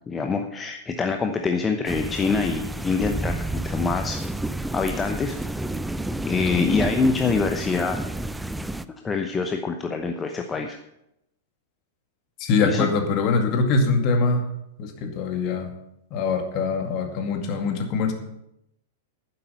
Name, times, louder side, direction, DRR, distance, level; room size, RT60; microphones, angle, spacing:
voice 1, 0.1-4.2 4.7-5.4 6.2-8.0 9.0-10.8 12.6-12.9, left 4 dB, 15° left, 5 dB, 0.9 m, -25 dB
Spring Rainstorm, 1.9-8.9, right 1 dB, 5° right, 0.5 m, -30 dB
voice 2, 12.4-14.4 14.8-15.7 16.1-18.1, left 4 dB, 40° left, 4 dB, 2.1 m, -23 dB
11.5 x 9.9 x 5.5 m, 0.83 s
figure-of-eight pair, 95°, 0 cm